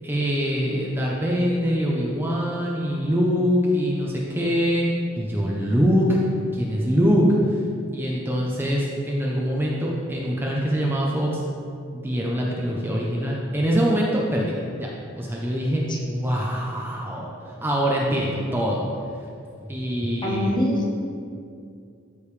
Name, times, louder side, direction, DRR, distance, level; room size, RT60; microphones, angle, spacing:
voice 1, 0.0-4.9 5.1-6.2 6.5-7.4 7.9-11.4 11.9-17.3 17.6-18.9 19.6-20.5, equal, 10° right, -4 dB, 0.8 m, -24 dB
voice 2, 20.2-20.9, left 1 dB, 25° left, -2 dB, 1.3 m, -24 dB
13.0 x 5.3 x 3.3 m, 2.4 s
head